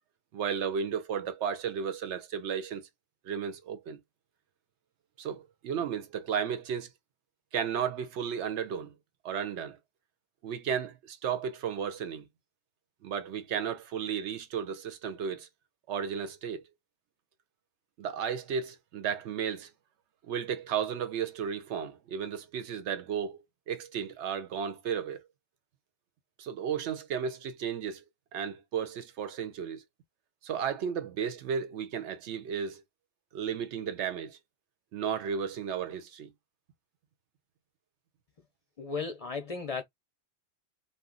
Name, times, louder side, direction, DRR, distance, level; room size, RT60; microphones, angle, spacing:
voice 1, 0.3-2.9 3.2-4.0 5.2-6.9 7.5-8.9 9.2-9.8 10.4-12.2 13.0-15.5 15.9-16.6 18.0-19.7 20.2-25.2 26.4-28.0 28.3-29.8 30.4-32.8 33.3-34.4 34.9-36.3, right 7 dB, 85° right, 0.9 m, -34 dB
voice 2, 38.8-39.8, left 4 dB, 50° left, 0.4 m, -35 dB
2.5 x 2.1 x 3.6 m
omnidirectional pair, 1.1 m